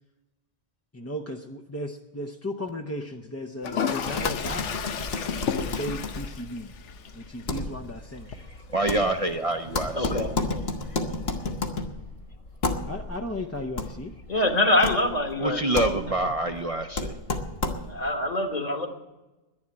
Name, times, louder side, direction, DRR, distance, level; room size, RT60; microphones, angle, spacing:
voice 1, 0.9-4.9 5.5-6.7 7.1-8.4 10.1-10.2 12.9-14.2, equal, 15° left, 2 dB, 0.6 m, -35 dB
Toilet flush, 3.6-11.6, left 7 dB, 85° left, 1.1 m, -35 dB
sound 1, 4.1-18.1, left 3 dB, 60° left, 1.5 m, -33 dB
voice 2, 8.4-10.3 15.4-17.2, right 2 dB, 35° right, 4 dB, 0.7 m, -27 dB
voice 3, 9.9-10.3 14.3-15.9 17.9-18.9, left 1 dB, 35° left, 4 dB, 1.5 m, -24 dB
11.0 x 10.5 x 8.7 m, 1.1 s
omnidirectional pair, 1.2 m